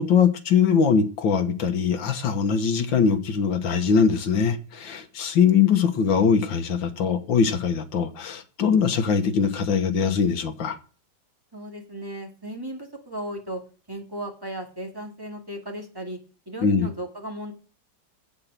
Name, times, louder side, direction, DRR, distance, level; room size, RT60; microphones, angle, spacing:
voice 1, 0.0-10.8 16.6-16.9, left 6 dB, 70° left, 1.9 m, -22 dB
voice 2, 11.5-13.6 13.9-16.2 16.5-17.5, right 1 dB, 10° right, 2.1 m, -35 dB
8.4 x 8.2 x 7.5 m
omnidirectional pair, 2.2 m